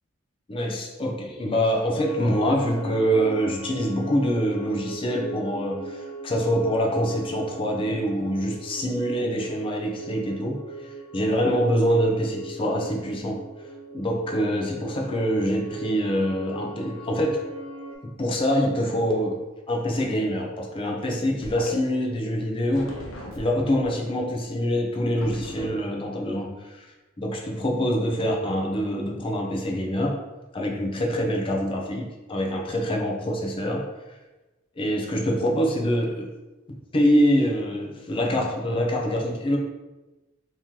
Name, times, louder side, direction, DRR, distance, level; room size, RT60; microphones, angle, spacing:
voice 1, 0.5-13.4 13.9-17.4 18.0-19.4 19.7-23.0 23.4-26.5 27.2-30.2 30.5-33.9 34.8-36.3 36.9-39.6, equal, 25° left, 0 dB, 0.5 m, -25 dB
sound 1, 1.9-17.9, right 1 dB, 5° left, 1.0 m, -39 dB
sound 2, 21.4-21.7 22.7-23.9 25.2-25.7, left 1 dB, 75° left, 0.6 m, -38 dB
2.9 x 2.8 x 3.6 m, 1.1 s
head